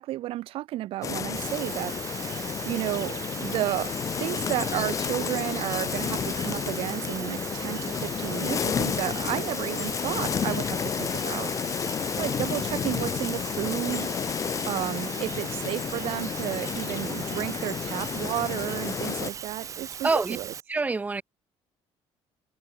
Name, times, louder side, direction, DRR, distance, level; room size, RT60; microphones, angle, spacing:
voice 1, 0.0-3.9 4.2-11.5 12.2-20.5, right 15 dB, 55° right, 0.8 m, -32 dB
sound 1, 1.0-19.3, left 7 dB, 30° left, 1.2 m, -31 dB
sound 2, 1.4-20.6, right 7 dB, 30° right, 1.8 m, -39 dB
voice 2, 20.0-20.4 20.7-21.2, right 3 dB, 15° right, 2.0 m, -25 dB
cardioid pair, 175°, 11 cm